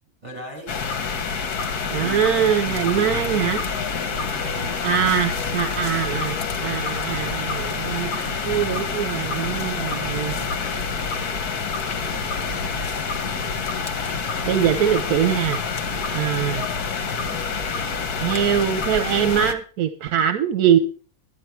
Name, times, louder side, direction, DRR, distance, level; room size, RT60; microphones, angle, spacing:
voice 1, 0.2-0.7 1.7-3.6 4.0-5.6 7.0-7.4 8.2-8.6 9.1-10.3 12.4-12.8 13.1-13.9 15.8-16.1, right 2 dB, 25° right, 1 dB, 6.0 m, -40 dB
sound 1, 0.7-19.5, left 5 dB, 85° left, 1.7 m, -27 dB
voice 2, 1.9-3.6 4.8-6.3 6.6-10.3 14.4-15.6 16.1-16.7 18.2-20.8, right 9 dB, 75° right, 9 dB, 1.2 m, -22 dB
sound 2, 2.6-16.0, equal, 50° left, 2.9 m, -40 dB
11.5 x 10.5 x 4.5 m, 0.38 s
omnidirectional pair, 1.6 m